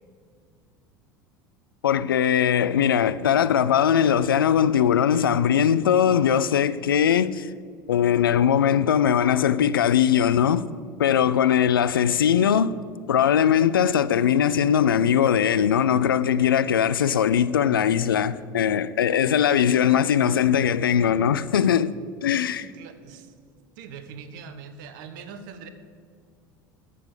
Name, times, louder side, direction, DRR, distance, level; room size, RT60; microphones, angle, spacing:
voice 1, 1.8-7.5 7.9-10.7 11.0-12.7 13.1-21.9 22.2-22.7, left 9 dB, 80° left, 0.4 m, -20 dB
voice 2, 11.2-11.6 22.6-23.3 23.8-25.7, right 6 dB, 65° right, 1.1 m, -42 dB
13.5 x 6.7 x 7.5 m
figure-of-eight pair, 75°, 11 cm